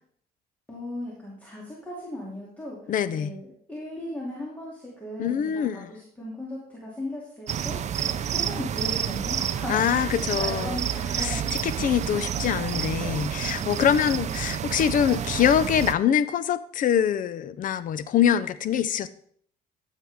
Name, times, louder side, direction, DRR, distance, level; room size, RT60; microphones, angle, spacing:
voice 1, 0.7-11.5 13.6-13.9, left 1 dB, 10° left, 2.9 m, -37 dB
voice 2, 2.9-3.3 5.2-5.9 9.7-10.8 11.2-19.1, left 9 dB, 55° left, 0.6 m, -24 dB
sound 1, 7.5-15.9, right 9 dB, 45° right, 0.6 m, -29 dB
12.5 x 7.5 x 3.6 m
cardioid pair, 110°, 17 cm